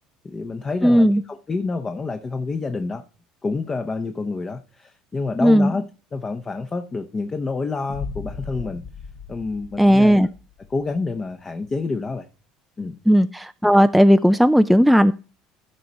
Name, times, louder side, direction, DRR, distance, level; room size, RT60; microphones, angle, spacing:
voice 1, 0.2-3.0 3.4-5.8 6.1-8.8 9.3-10.2 10.7-12.3 12.8-13.0, left 3 dB, 25° left, 0.8 m, -28 dB
voice 2, 0.8-1.2 5.4-5.7 9.8-10.3 13.1-15.1, equal, ahead, 0.3 m, -15 dB
Boom, 7.9-10.9, left 5 dB, 55° left, 1.1 m, -37 dB
14.0 x 5.0 x 4.1 m
supercardioid pair, 105°, 2 cm